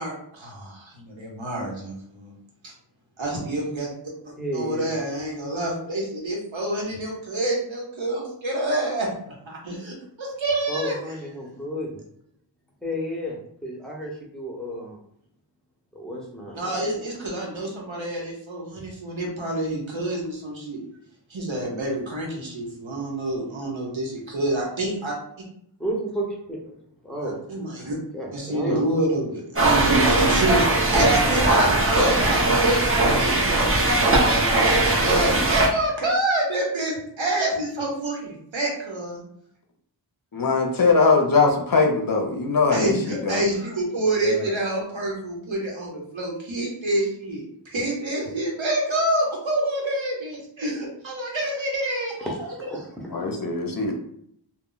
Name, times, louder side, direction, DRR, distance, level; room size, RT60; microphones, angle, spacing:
voice 1, 0.0-2.3 2.6-2.7 3.2-3.9 4.5-11.0 16.5-20.8 21.3-25.1 27.2-28.0 28.3-33.8 34.6-39.2 42.7-47.4 47.7-52.7, right 1 dB, 90° right, -2 dB, 0.9 m, -27 dB
voice 2, 4.4-4.9 10.7-12.0 12.8-15.0 15.9-16.8 25.8-26.6 27.0-27.4 28.1-28.8 44.2-44.5 52.2-53.3, equal, ahead, -3 dB, 0.9 m, -32 dB
sound 1, 29.6-35.7, right 2 dB, 30° right, 0.7 m, -19 dB
voice 3, 40.3-43.4 53.1-53.9, left 4 dB, 50° left, 2 dB, 0.6 m, -21 dB
2.2 x 2.1 x 3.8 m, 0.70 s
wide cardioid pair, 55°, 45 cm